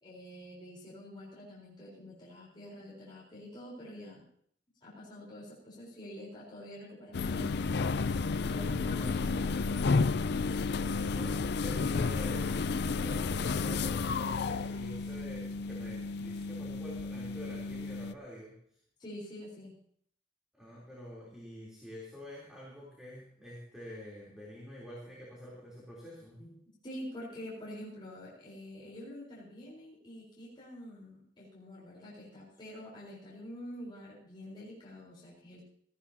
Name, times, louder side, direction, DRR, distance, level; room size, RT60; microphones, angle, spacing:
voice 1, 0.0-4.3 4.8-7.6 8.5-10.0 19.0-19.7 26.4-35.6, left 1 dB, 25° left, -6 dB, 4.1 m, -47 dB
sound 1, 7.1-18.1, left 4 dB, 60° left, 0.5 m, -32 dB
voice 2, 9.0-10.0 11.1-12.6 13.0-18.6 20.5-26.4, left 1 dB, 5° right, -6 dB, 3.4 m, -47 dB
18.0 x 15.0 x 2.8 m, 0.63 s
head